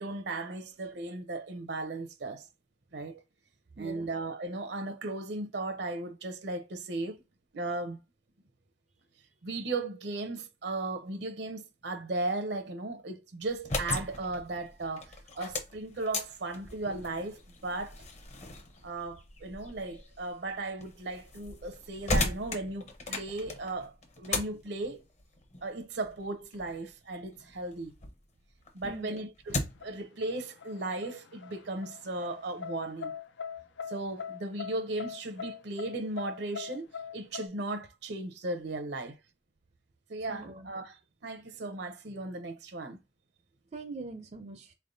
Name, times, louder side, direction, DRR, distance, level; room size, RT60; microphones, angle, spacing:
voice 1, 0.0-2.5 2.9-3.2 3.8-7.2 7.5-8.0 9.4-18.0 18.8-25.0 25.6-27.9 28.7-33.1 33.9-39.1 40.1-41.0 41.2-43.0, right 2 dB, 70° right, 0.7 m, -36 dB
voice 2, 3.8-4.1 28.8-29.2 40.3-40.7 43.7-44.7, right 3 dB, 40° right, 0.5 m, -42 dB
sound 1, 13.5-28.2 28.6-30.0, left 2 dB, 40° left, 0.8 m, -38 dB
sound 2, 29.8-37.5, left 7 dB, 85° left, 0.5 m, -42 dB
4.1 x 3.4 x 2.6 m
head